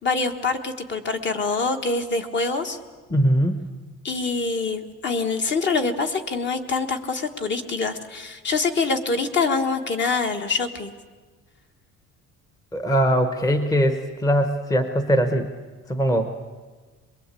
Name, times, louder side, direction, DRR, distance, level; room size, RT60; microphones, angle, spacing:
voice 1, 0.0-2.8 4.0-10.9, left 4 dB, 40° left, 5 dB, 1.5 m, -25 dB
voice 2, 3.1-3.6 12.7-15.5 15.9-16.4, equal, 10° left, 8 dB, 1.0 m, -21 dB
23.0 x 22.0 x 8.4 m, 1.4 s
cardioid pair, 165°, 29 cm